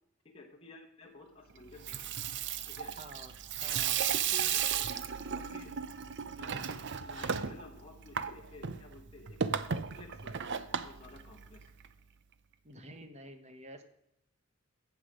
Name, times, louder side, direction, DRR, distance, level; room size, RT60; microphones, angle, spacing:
voice 1, 0.3-2.2 2.6-2.9 3.8-4.0 4.3-4.9 5.3-5.7 6.4-9.4 9.7-11.7, left 2 dB, 25° left, -1 dB, 1.3 m, -52 dB
Water tap faucet / Sink (filling or washing), 1.7-11.9, right 8 dB, 55° right, 0.6 m, -35 dB
voice 2, 3.0-3.3 3.6-4.0 12.6-13.8, right 1 dB, 30° right, 8 dB, 1.3 m, -49 dB
14.5 x 8.3 x 5.0 m, 0.81 s
head